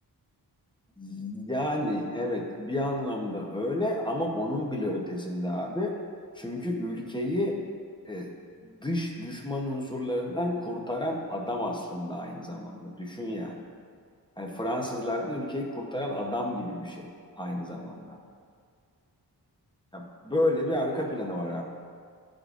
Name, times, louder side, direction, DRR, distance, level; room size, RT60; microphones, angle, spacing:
voice 1, 1.0-6.0 6.3-7.5 8.1-8.3 8.6-13.6 14.4-17.1 17.4-18.2 19.9-21.6, left 1 dB, 10° left, -1 dB, 0.8 m, -31 dB
12.0 x 5.1 x 2.5 m, 2.1 s
wide cardioid pair, 130°, 39 cm